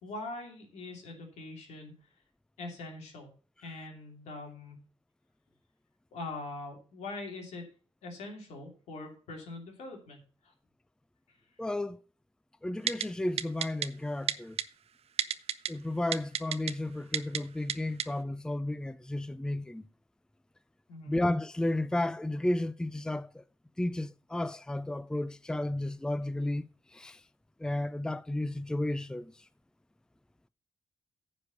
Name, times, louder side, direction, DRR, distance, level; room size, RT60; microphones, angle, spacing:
voice 1, 0.0-2.0 2.6-3.3 3.6-4.8 6.1-7.7 8.0-10.5 20.9-21.2, left 2 dB, 90° left, 2.7 m, -43 dB
voice 2, 11.6-12.0 12.6-14.6 15.7-19.8 21.1-23.4 23.8-26.7 26.9-27.2 27.6-29.3, left 1 dB, 5° left, 0.4 m, -33 dB
Typing, 12.9-13.0 13.4-13.9 14.3-14.6 15.2-15.7 16.1-16.7 17.1-17.4 17.7-17.8 18.0-18.1, right 9 dB, 65° right, 0.6 m, -29 dB
9.7 x 5.2 x 7.0 m
cardioid pair, 70°, 11 cm